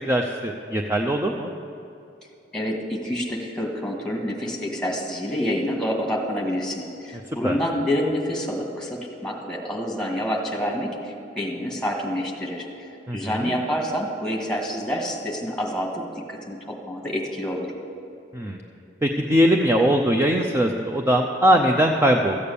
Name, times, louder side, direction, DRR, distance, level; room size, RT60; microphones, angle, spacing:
voice 1, 0.0-1.5 7.4-7.6 13.1-13.5 18.3-18.6 19.0-22.4, equal, 15° right, 2 dB, 0.6 m, -21 dB
voice 2, 2.5-16.0 16.3-17.7, equal, 5° left, -1 dB, 1.7 m, -28 dB
14.0 x 8.6 x 6.9 m, 2.7 s
head